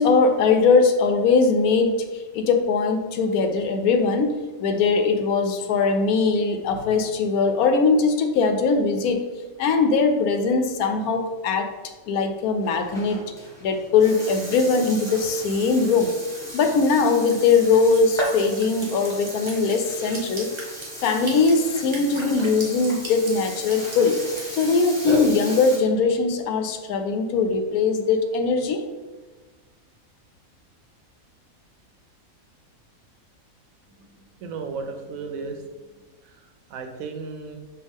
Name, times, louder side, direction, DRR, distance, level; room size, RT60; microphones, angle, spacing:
voice 1, 0.0-9.2 9.6-11.7 12.1-13.2 13.6-16.1 16.5-20.5 21.0-24.2 24.5-28.8, left 4 dB, 85° left, 6 dB, 1.1 m, -21 dB
Burping eructation, 12.6-25.8, right 1 dB, ahead, 1.1 m, -35 dB
Drip, 17.0-24.7, right 2 dB, 30° right, 0.5 m, -39 dB
voice 2, 34.0-37.5, right 4 dB, 75° right, 5 dB, 1.0 m, -36 dB
5.5 x 2.4 x 3.5 m, 1.3 s
omnidirectional pair, 1.5 m